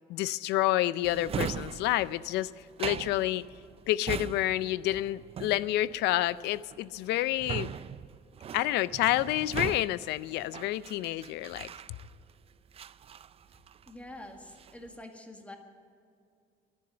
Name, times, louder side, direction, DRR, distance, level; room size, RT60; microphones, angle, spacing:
voice 1, 0.1-2.5 2.8-3.4 3.9-7.7 8.5-11.7, left 15 dB, 85° left, 18 dB, 0.5 m, -29 dB
Drawer open or close, 1.0-12.3 12.7-14.0 14.4-14.9, right 8 dB, 35° right, 0.4 m, -40 dB
voice 2, 13.9-15.6, left 1 dB, 10° left, 4 dB, 1.7 m, -46 dB
12.0 x 10.5 x 8.9 m, 2.3 s
cardioid pair, 110°, 17 cm